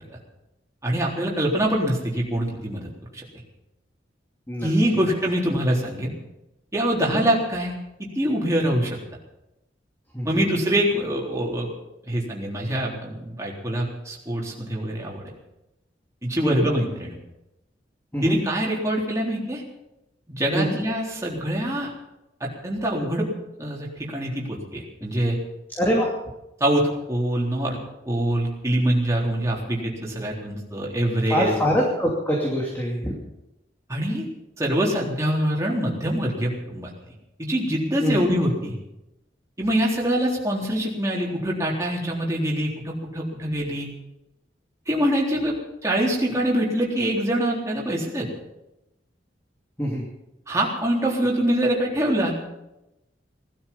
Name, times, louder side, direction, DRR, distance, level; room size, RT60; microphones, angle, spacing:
voice 1, 0.8-3.2 4.6-6.1 6.7-7.7 8.1-9.0 10.2-11.7 12.1-15.3 16.2-17.2 18.2-19.6 20.3-21.9 22.4-23.3 23.6-25.4 26.6-26.8 27.1-27.8 28.1-31.5 33.9-34.3 34.6-36.9 37.4-38.8 39.6-43.9 44.9-45.5 45.8-48.3 50.5-52.3, right 1 dB, 15° right, -3 dB, 3.7 m, -24 dB
voice 2, 25.8-26.1 31.3-33.1 38.0-38.2 49.8-50.0, equal, 10° left, -2 dB, 2.6 m, -23 dB
19.0 x 13.0 x 5.5 m, 0.91 s
head